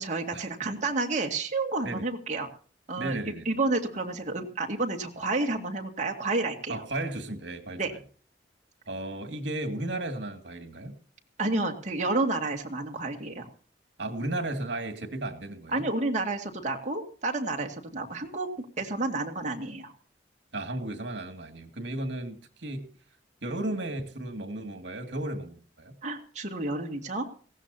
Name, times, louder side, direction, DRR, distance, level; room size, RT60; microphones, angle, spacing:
voice 1, 0.0-2.5 2.9-3.2 3.5-6.8 7.8-7.9 11.4-13.5 15.7-19.9 26.0-27.3, right 2 dB, 40° right, 3 dB, 2.1 m, -30 dB
voice 2, 3.0-3.5 6.7-8.0 8.9-11.0 14.0-15.9 20.5-22.9 23.4-25.9, right 1 dB, 70° right, 7 dB, 2.3 m, -34 dB
19.0 x 16.0 x 2.8 m, 0.43 s
head